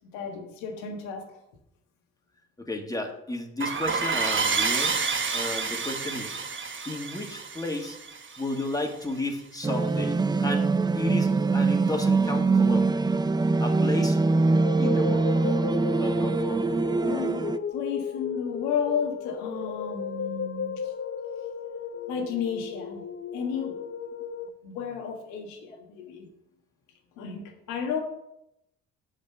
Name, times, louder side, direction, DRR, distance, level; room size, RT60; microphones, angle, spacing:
voice 1, 0.1-1.2 17.0-17.4 17.7-20.8 22.1-23.0 23.3-23.8 24.6-26.2 27.2-28.0, left 7 dB, 90° left, 3 dB, 1.6 m, -32 dB
voice 2, 2.6-5.0 5.3-6.4 6.9-8.0 8.4-13.0 13.6-14.2 14.8-15.3 16.0-16.7, left 2 dB, 10° left, 2 dB, 2.0 m, -33 dB
sound 1, 3.6-8.9, right 5 dB, 40° right, 1.1 m, -29 dB
sound 2, 9.6-17.6, right 3 dB, 15° right, 0.4 m, -23 dB
sound 3, 14.2-24.5, left 7 dB, 40° left, 0.8 m, -35 dB
8.8 x 5.3 x 5.8 m, 0.82 s
supercardioid pair, 65°, 29 cm